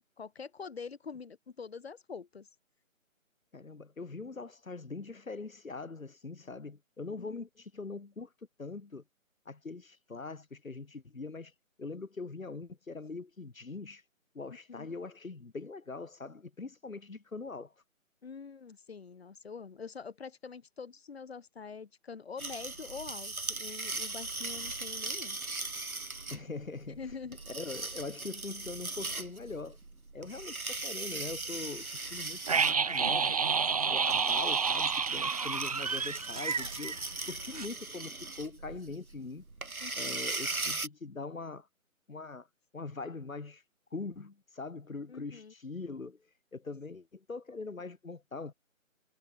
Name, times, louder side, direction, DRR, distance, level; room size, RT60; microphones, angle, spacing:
voice 1, 0.2-2.5 7.2-7.4 14.7-14.9 18.2-25.4 25.8-25.9 27.0-27.4 39.8-40.2 45.1-45.5, left 5 dB, 45° left, 6.4 m, -45 dB
voice 2, 3.5-8.3 8.6-9.0 9.5-11.5 11.8-14.0 14.3-17.7 26.3-27.1 27.5-29.8 30.1-33.4 33.9-37.0 37.3-39.4 40.0-41.7 42.1-42.5 42.7-43.6 43.9-46.3 46.5-48.5, left 3 dB, 70° left, 6.1 m, -42 dB
sound 1, 22.4-40.9, right 3 dB, 85° right, 7.2 m, -39 dB
sound 2, 32.5-37.3 37.5-37.7, right 5 dB, 25° right, 1.2 m, -29 dB
figure-of-eight pair, 165°, 41 cm